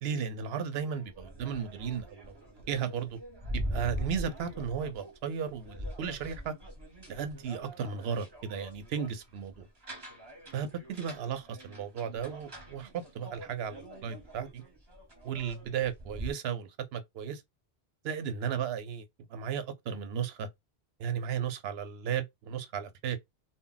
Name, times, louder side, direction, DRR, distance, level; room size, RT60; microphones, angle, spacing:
voice 1, 0.0-3.2 3.5-6.5 7.1-9.6 10.5-14.6 15.2-17.4 18.0-19.0 19.3-20.5 21.0-23.2, right 7 dB, 70° right, 0.8 m, -35 dB
sound 1, 0.7-16.3, equal, 25° right, 0.7 m, -43 dB
2.1 x 2.1 x 3.8 m
omnidirectional pair, 1.1 m